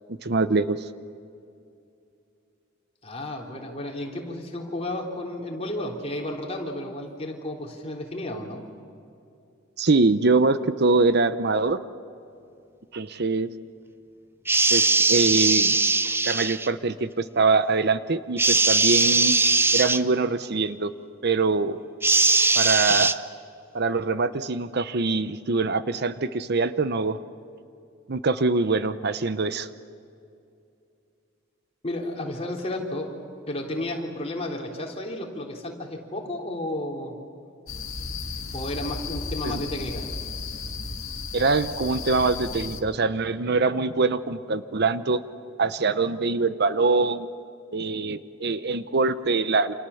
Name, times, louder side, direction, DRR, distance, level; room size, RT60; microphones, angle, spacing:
voice 1, 0.1-0.9 9.8-11.8 12.9-13.5 14.7-15.8 16.2-19.4 19.7-20.9 21.2-21.8 22.5-23.2 23.7-27.2 28.1-29.7 39.4-39.6 41.3-45.2 45.6-47.3 47.7-49.7, right 3 dB, 55° right, 13 dB, 0.8 m, -23 dB
voice 2, 3.0-8.6 31.8-33.2 33.5-37.2 38.5-40.1, left 1 dB, 30° left, 0 dB, 3.6 m, -32 dB
sound 1, 14.5-16.7 18.4-20.0 22.0-23.1, right 3 dB, 10° right, 0.6 m, -20 dB
sound 2, 37.7-42.8, left 4 dB, 90° left, 1.9 m, -34 dB
29.0 x 27.5 x 7.2 m, 2.6 s
head